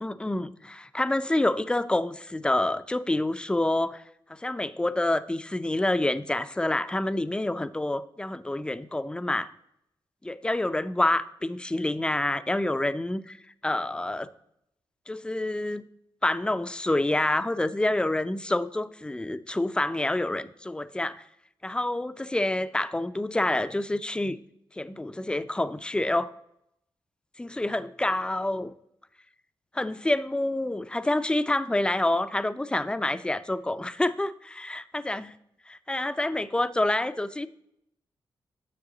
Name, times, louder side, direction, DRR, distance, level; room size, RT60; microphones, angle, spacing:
voice 1, 0.0-4.0 4.3-9.5 10.2-13.4 13.6-14.3 15.1-15.8 16.2-21.2 21.6-24.4 24.7-26.3 27.4-28.7 29.7-35.3 35.7-37.5, left 1 dB, 10° left, 13 dB, 0.4 m, -27 dB
9.7 x 7.2 x 3.9 m, 0.76 s
cardioid pair, 85°, 9 cm